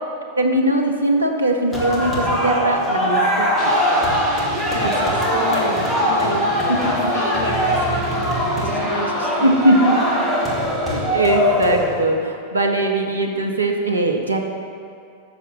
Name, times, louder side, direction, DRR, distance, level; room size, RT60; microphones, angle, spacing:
voice 1, 0.4-3.5 6.7-7.1 9.4-9.9 10.9-14.4, right 1 dB, 80° right, 3 dB, 0.9 m, -20 dB
sound 1, 1.7-12.2, left 1 dB, 15° left, 2.0 m, -21 dB
sound 2, 3.6-11.2, right 1 dB, 35° right, 1.3 m, -33 dB
voice 2, 4.7-6.6 7.1-10.5, left 1 dB, 75° left, 1 dB, 1.2 m, -29 dB
6.8 x 6.1 x 7.6 m, 2.4 s
figure-of-eight pair, 90°, 0 cm